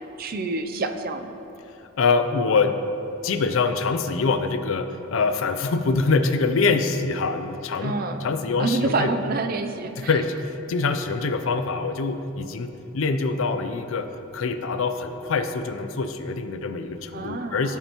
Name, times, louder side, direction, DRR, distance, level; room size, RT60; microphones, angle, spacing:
voice 1, 0.2-1.4 7.8-8.2 8.6-10.1 17.1-17.8, right 3 dB, 40° right, 7 dB, 0.4 m, -27 dB
voice 2, 2.0-2.8 3.2-9.1 10.0-14.1 14.3-17.8, left 4 dB, 65° left, 8 dB, 0.5 m, -24 dB
15.0 x 5.6 x 3.0 m, 2.9 s
head